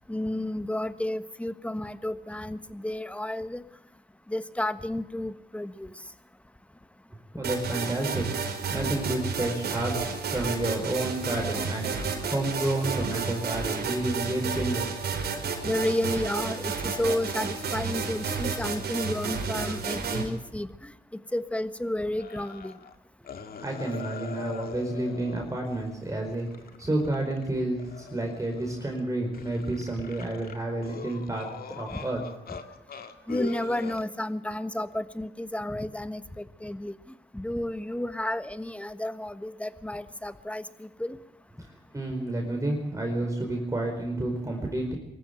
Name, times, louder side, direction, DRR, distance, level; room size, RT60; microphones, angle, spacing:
voice 1, 0.1-3.6 4.3-5.9 15.6-20.9 21.3-22.8 31.9-32.0 33.3-36.9 37.3-41.2, left 1 dB, 5° left, 12 dB, 1.4 m, -31 dB
voice 2, 7.4-8.3 8.7-11.9 12.3-15.0 23.6-26.5 26.8-31.5 31.8-32.2 41.6-44.9, right 1 dB, 20° right, 1 dB, 4.7 m, -30 dB
sound 1, 7.4-20.2, right 5 dB, 80° right, 4.8 m, -31 dB
sound 2, 22.2-22.9 23.2-27.5 27.8-29.0 29.3-32.6 32.9-34.0, left 6 dB, 65° left, 2.0 m, -42 dB
23.5 x 14.0 x 9.1 m, 0.92 s
cardioid pair, 80°, 17 cm